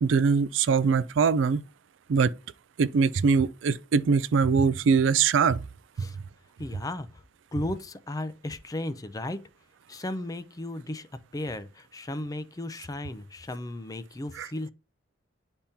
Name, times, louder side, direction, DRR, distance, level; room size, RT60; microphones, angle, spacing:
voice 1, 0.0-1.6 2.1-2.3 2.8-5.6 14.4-14.5, right 5 dB, 80° right, 0.4 m, -22 dB
voice 2, 6.6-7.1 7.5-9.4 9.9-11.1 11.3-14.7, left 1 dB, 20° left, 0.5 m, -35 dB
10.0 x 3.6 x 2.7 m
head